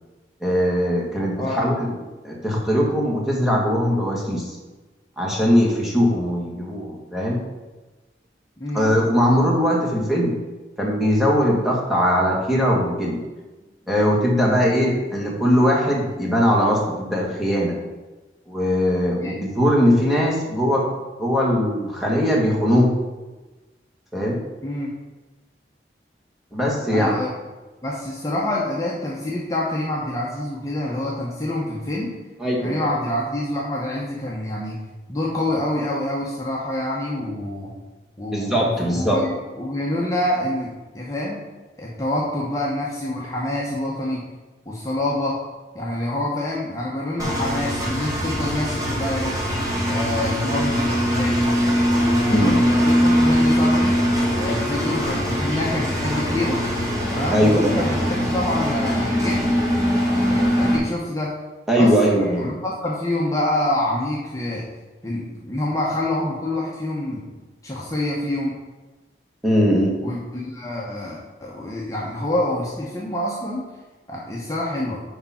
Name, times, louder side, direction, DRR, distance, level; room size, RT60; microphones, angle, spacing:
voice 1, 0.4-2.0 2.2-4.6 5.2-7.4 8.7-10.3 10.8-13.2 13.9-17.8 18.5-20.9 21.2-22.9 24.1-24.4 26.5-27.2 32.4-32.9 38.3-39.2 52.2-52.6 57.3-57.7 61.7-62.5 69.4-69.9, equal, ahead, -3 dB, 1.4 m, -20 dB
voice 2, 1.4-1.7 8.6-8.9 19.2-19.4 24.6-24.9 26.9-27.3 27.8-32.1 32.6-34.8 35.1-37.7 38.2-41.4 41.8-44.2 44.7-45.4 45.7-49.4 49.9-51.4 51.9-54.0 54.3-56.6 57.1-59.5 60.2-61.3 61.8-64.6 65.0-67.3 67.6-68.5 70.0-73.6 74.1-75.0, left 1 dB, 20° left, -5 dB, 1.0 m, -26 dB
Engine, 47.2-60.8, equal, 20° right, 1.7 m, -21 dB
6.6 x 4.8 x 5.7 m, 1.2 s
head